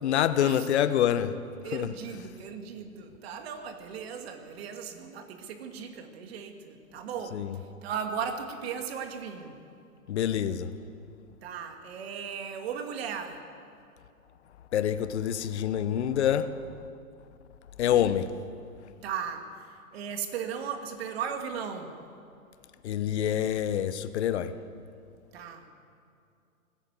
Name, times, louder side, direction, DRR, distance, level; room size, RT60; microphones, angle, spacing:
voice 1, 0.0-1.3 1.7-1.9 7.3-7.5 10.1-10.7 14.7-16.5 17.8-18.3 22.8-24.5, left 10 dB, 50° left, 1.2 m, -26 dB
voice 2, 1.6-7.5 7.8-9.6 11.4-13.4 19.0-19.5 19.9-21.9 25.3-25.7, right 7 dB, 45° right, 2.4 m, -37 dB
20.0 x 16.0 x 8.2 m
hypercardioid pair, 145°, 43 cm